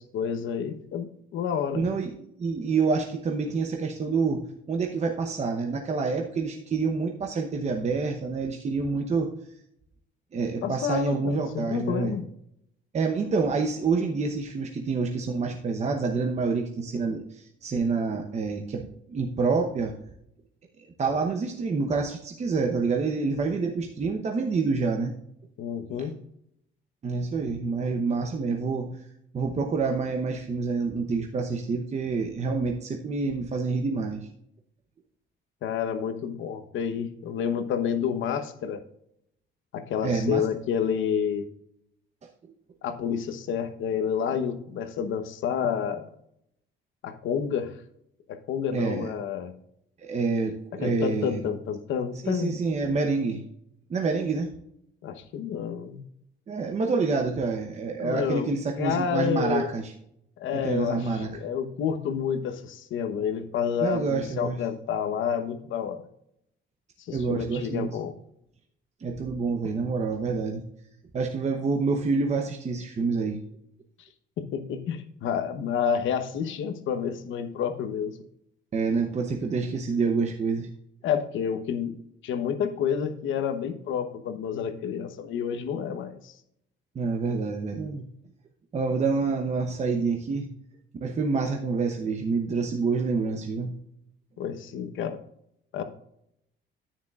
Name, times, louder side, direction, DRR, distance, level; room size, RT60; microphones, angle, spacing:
voice 1, 0.0-1.8 10.6-12.2 25.6-26.2 35.6-38.8 39.7-41.4 42.8-46.1 47.0-47.8 48.3-49.5 50.8-52.6 55.0-56.0 58.0-59.7 60.4-66.0 67.0-68.1 74.0-74.1 74.4-78.2 81.0-82.0 82.2-86.4 94.4-95.2 95.7-95.8, left 7 dB, 80° left, 8 dB, 1.0 m, -29 dB
voice 2, 1.7-2.1 2.4-9.3 10.3-12.2 12.9-19.9 20.8-25.1 25.9-26.1 27.0-28.9 29.3-34.3 40.0-40.5 48.7-49.1 50.0-51.4 52.2-53.4 53.9-54.5 56.5-59.9 60.5-61.3 63.8-64.6 67.1-67.9 69.0-70.6 71.1-73.4 78.7-80.7 86.9-88.1 88.7-90.5 91.0-93.7, right 4 dB, 35° right, 2 dB, 0.9 m, -27 dB
10.0 x 9.4 x 2.4 m, 0.74 s
cardioid pair, 130°, 20 cm